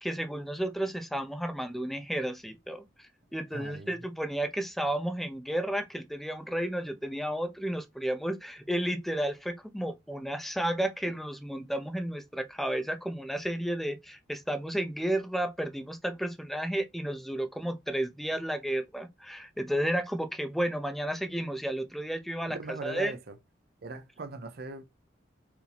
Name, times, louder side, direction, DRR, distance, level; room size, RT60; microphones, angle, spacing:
voice 1, 0.0-22.6 22.8-23.1, right 1 dB, ahead, 0.5 m, -32 dB
voice 2, 3.5-4.0 22.5-23.4 23.8-24.8, right 3 dB, 55° right, 0.6 m, -40 dB
4.8 x 2.7 x 3.3 m
head